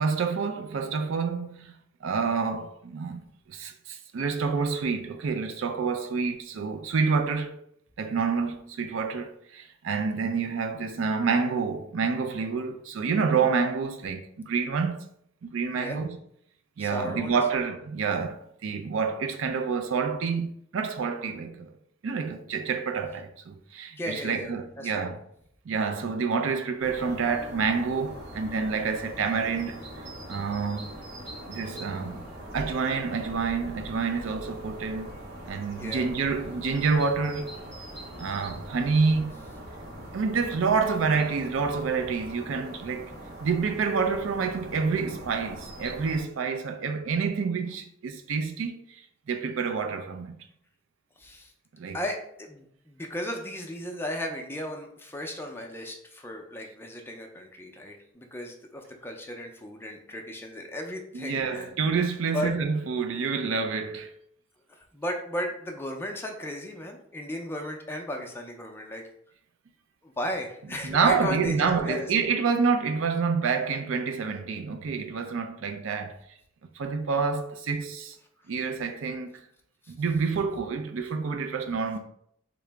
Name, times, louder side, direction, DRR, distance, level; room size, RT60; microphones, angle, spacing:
voice 1, 0.0-1.7 2.0-7.6 8.0-15.0 15.4-16.2 16.8-21.7 22.0-25.2 25.7-29.8 30.3-30.9 31.5-32.3 32.5-35.1 35.5-37.5 38.2-39.3 40.1-43.1 43.4-49.0 49.3-50.4 51.8-52.0 61.1-64.1 70.8-76.1 76.8-78.1 78.5-79.4 79.9-82.0, right 5 dB, 85° right, 0.4 m, -28 dB
voice 2, 16.8-17.4 24.0-24.5 24.8-25.0 35.7-36.0 51.2-51.5 51.9-61.8 62.3-62.5 64.7-69.1 70.0-72.1 79.8-79.9, left 1 dB, 10° left, 0.4 m, -35 dB
sound 1, 26.8-46.2, right 1 dB, 55° right, 0.8 m, -42 dB
3.6 x 2.0 x 3.3 m
head